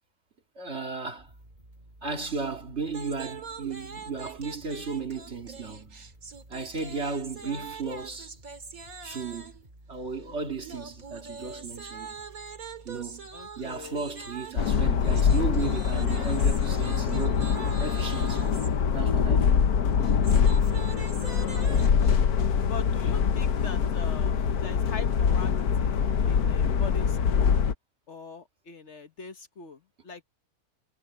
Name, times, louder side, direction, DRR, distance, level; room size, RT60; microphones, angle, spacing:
voice 1, 0.6-1.3 2.0-6.1 6.5-8.4 9.0-9.5 9.9-12.2 12.8-13.3 13.6-17.5 17.8-18.5 18.9-19.7, right 4 dB, 45° right, 2.5 m, -35 dB
sound 1, 1.2-19.0, right 1 dB, 30° right, 6.9 m, -53 dB
sound 2, 2.9-9.7 10.6-18.7 19.9-22.2, right 5 dB, 70° right, 2.7 m, -43 dB
voice 2, 13.3-14.0 21.2-21.9 22.6-26.0 26.3-27.6 28.1-30.2, left 5 dB, 50° left, 1.4 m, -42 dB
sound 3, 14.6-27.7, left 7 dB, 90° left, 1.5 m, -24 dB
omnidirectional pair, 1.5 m